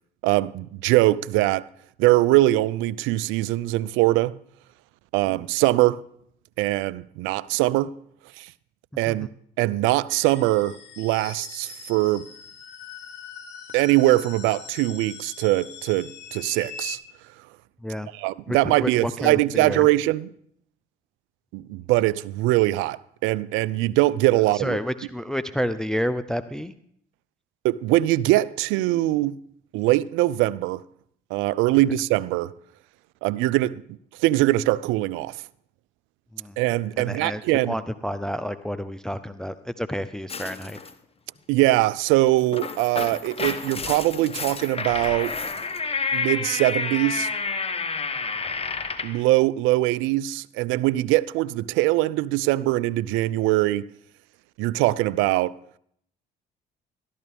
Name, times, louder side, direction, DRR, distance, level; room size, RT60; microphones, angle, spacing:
voice 1, 0.2-1.7 2.0-4.4 5.1-6.0 6.6-7.9 8.4-8.5 9.0-9.3 9.6-12.3 13.7-17.0 18.1-20.3 21.5-24.8 27.6-29.4 29.7-30.8 31.3-32.5 33.2-33.8 34.2-35.4 36.6-37.7 41.5-45.3 46.1-47.3 49.0-53.9 54.6-55.5, right 17 dB, 70° right, 0.4 m, -22 dB
sound 1, 10.1-17.0, left 7 dB, 55° left, 2.8 m, -42 dB
voice 2, 18.5-19.9 24.5-26.7 36.3-36.6 37.0-37.4 37.7-40.8 48.4-48.6, equal, 5° left, 0.6 m, -30 dB
sound 2, 40.3-40.9 42.3-49.2, left 4 dB, 30° left, 1.2 m, -30 dB
14.0 x 12.0 x 3.5 m
hypercardioid pair, 55°, 21 cm